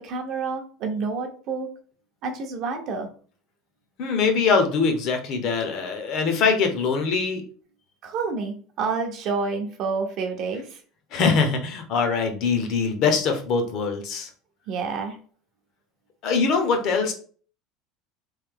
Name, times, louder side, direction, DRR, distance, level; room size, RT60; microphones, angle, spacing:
voice 1, 0.0-1.7 2.2-3.1 8.0-10.8 14.7-15.2, right 4 dB, 40° right, 4 dB, 0.6 m, -29 dB
voice 2, 4.0-7.4 11.1-14.3 16.2-17.1, left 5 dB, 40° left, 5 dB, 0.7 m, -23 dB
3.1 x 2.7 x 3.6 m, 0.42 s
cardioid pair, 175°, 0 cm